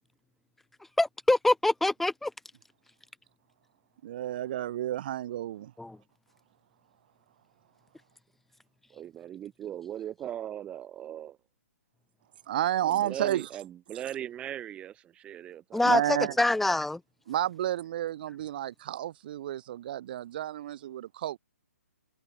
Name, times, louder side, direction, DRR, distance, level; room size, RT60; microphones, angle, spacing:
voice 1, 1.0-2.3 5.8-6.0 15.7-17.0, left 2 dB, 5° left, 1.9 m, -25 dB
voice 2, 4.0-5.7 12.5-13.5 13.9-14.0 15.8-16.3 17.3-21.4, right 12 dB, 40° right, 1.3 m, -31 dB
voice 3, 8.9-11.4 12.8-15.9 16.3-16.4, right 11 dB, 15° right, 1.4 m, -39 dB
figure-of-eight pair, 130°, 8 cm